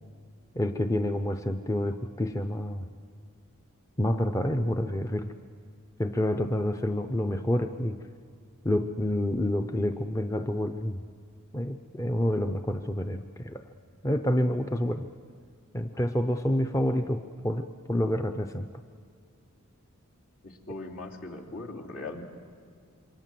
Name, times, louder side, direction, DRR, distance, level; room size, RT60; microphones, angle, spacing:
voice 1, 0.5-2.9 4.0-5.3 6.0-8.0 8.6-11.0 11.5-13.6 14.0-15.1 15.7-18.7, left 1 dB, 15° left, 7 dB, 0.6 m, -28 dB
voice 2, 20.4-22.2, left 2 dB, 70° left, -1 dB, 3.0 m, -39 dB
27.0 x 23.5 x 7.6 m, 2.1 s
head